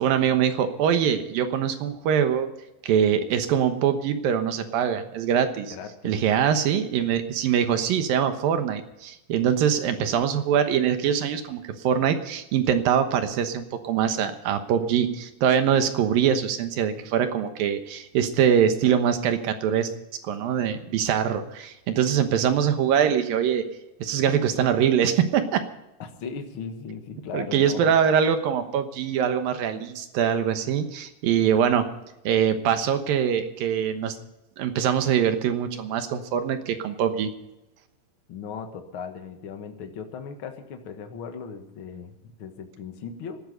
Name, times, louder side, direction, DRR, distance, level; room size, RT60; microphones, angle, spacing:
voice 1, 0.0-2.5 2.8-5.7 6.0-19.9 20.2-23.6 24.0-25.6 27.3-31.9 32.2-34.1 34.6-37.3, right 8 dB, 80° right, 8 dB, 2.9 m, -23 dB
voice 2, 5.7-6.4 26.0-28.0 38.3-43.4, left 6 dB, 45° left, 5 dB, 1.8 m, -38 dB
18.0 x 12.5 x 5.3 m, 0.92 s
omnidirectional pair, 4.2 m